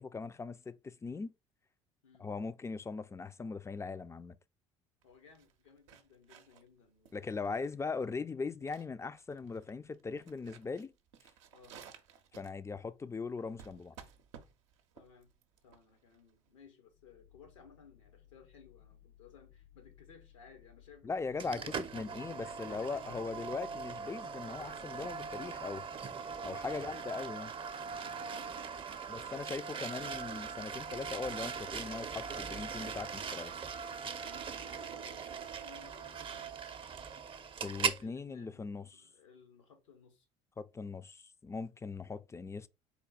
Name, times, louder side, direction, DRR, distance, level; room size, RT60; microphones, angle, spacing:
voice 1, 0.0-1.3 2.2-4.4 7.1-10.9 12.3-14.0 21.0-25.9 26.4-27.5 29.1-33.5 37.6-39.0 40.6-42.7, left 4 dB, 20° left, 0.3 m, -40 dB
voice 2, 5.0-7.8 11.5-11.8 14.9-15.3 15.6-21.8 22.2-23.0 26.6-27.3 28.2-28.8 29.1-29.4 34.2-36.7 38.0-40.3, left 6 dB, 85° left, 1.0 m, -59 dB
sound 1, 5.0-16.7, right 7 dB, 80° right, 0.6 m, -58 dB
sound 2, 16.9-26.5, left 11 dB, 65° left, 1.0 m, -62 dB
sound 3, 21.4-38.0, right 6 dB, 35° right, 0.5 m, -40 dB
4.2 x 2.2 x 3.9 m
hypercardioid pair, 60°, 16 cm